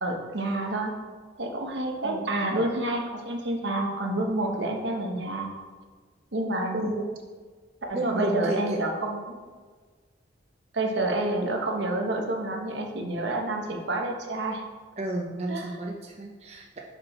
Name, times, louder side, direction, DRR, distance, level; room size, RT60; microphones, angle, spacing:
voice 1, 0.0-0.9 1.4-5.5 6.3-6.9 7.9-9.4 10.7-14.6 15.5-15.8, right 2 dB, 70° right, 2 dB, 1.0 m, -28 dB
voice 2, 6.7-7.1 7.9-8.8 15.0-16.8, right 1 dB, 35° right, -1 dB, 0.5 m, -32 dB
6.2 x 5.1 x 4.3 m, 1.5 s
head